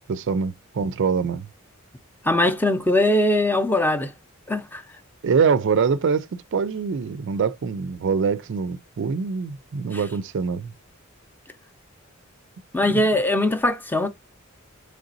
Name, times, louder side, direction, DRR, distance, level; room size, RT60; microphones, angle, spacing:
voice 1, 0.1-1.5 5.2-10.7 12.8-13.0, right 5 dB, 60° right, 0.4 m, -24 dB
voice 2, 2.2-4.1 4.5-4.8 9.9-10.0 12.7-14.1, left 1 dB, 10° left, 0.6 m, -21 dB
3.8 x 3.3 x 2.6 m
head